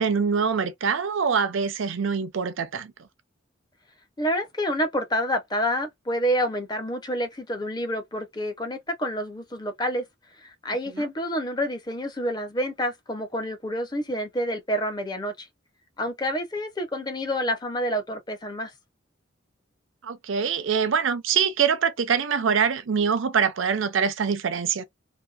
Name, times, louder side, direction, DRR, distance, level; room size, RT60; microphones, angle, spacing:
voice 1, 0.0-2.9 10.9-11.1 20.0-24.8, right 6 dB, 75° right, 0.5 m, -24 dB
voice 2, 4.2-10.0 10.4-15.5 16.0-18.7, equal, 20° left, 0.6 m, -28 dB
2.7 x 2.6 x 2.3 m
head